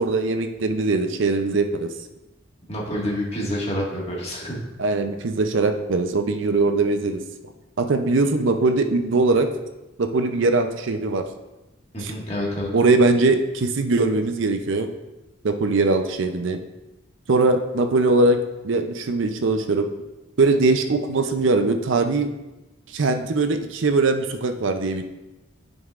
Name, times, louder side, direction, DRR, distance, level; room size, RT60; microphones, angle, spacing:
voice 1, 0.0-1.9 4.8-7.2 7.8-9.5 10.0-11.2 12.0-12.1 12.7-14.9 15.4-16.6 17.3-18.4 18.6-19.9 20.4-22.3 22.9-25.0, right 3 dB, 70° right, 7 dB, 0.5 m, -21 dB
voice 2, 2.7-4.6 11.9-12.7, left 1 dB, 30° left, -4 dB, 1.8 m, -28 dB
11.0 x 5.3 x 2.5 m, 1.0 s
head